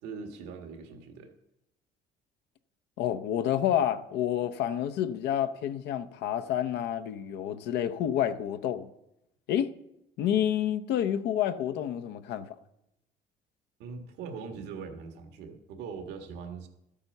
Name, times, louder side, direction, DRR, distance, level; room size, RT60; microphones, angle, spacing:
voice 1, 0.0-1.3 13.8-16.7, right 5 dB, 90° right, 1.7 m, -41 dB
voice 2, 3.0-8.9 9.5-9.7 10.2-12.5, left 10 dB, 85° left, 0.8 m, -29 dB
13.0 x 8.7 x 5.4 m
cardioid pair, 110°, 17 cm